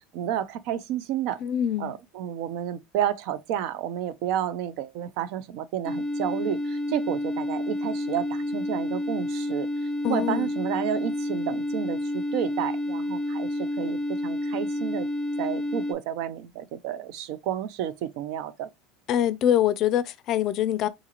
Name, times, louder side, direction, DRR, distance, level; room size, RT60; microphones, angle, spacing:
voice 1, 0.1-1.4 1.8-9.7 10.1-15.1 15.4-18.7, right 10 dB, 65° right, 0.4 m, -31 dB
voice 2, 1.4-2.0 10.0-10.5 19.1-20.9, left 10 dB, 50° left, 0.4 m, -24 dB
sound 1, 5.8-15.9, left 1 dB, 5° left, 0.7 m, -29 dB
3.8 x 2.4 x 2.9 m
supercardioid pair, 120°, 0 cm